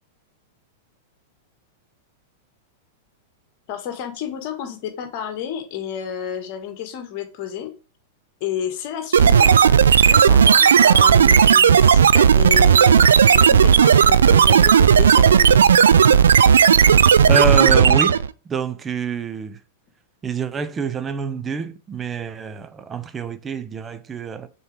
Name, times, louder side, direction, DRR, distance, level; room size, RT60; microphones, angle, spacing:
voice 1, 3.7-7.7 8.4-15.6, left 9 dB, 45° left, 1.7 m, -31 dB
sound 1, 9.1-18.3, right 7 dB, 70° right, 0.4 m, -13 dB
voice 2, 17.3-18.2 18.5-19.6 20.2-24.5, right 6 dB, 20° right, 0.8 m, -26 dB
6.5 x 4.4 x 5.0 m
figure-of-eight pair, 95°, 0 cm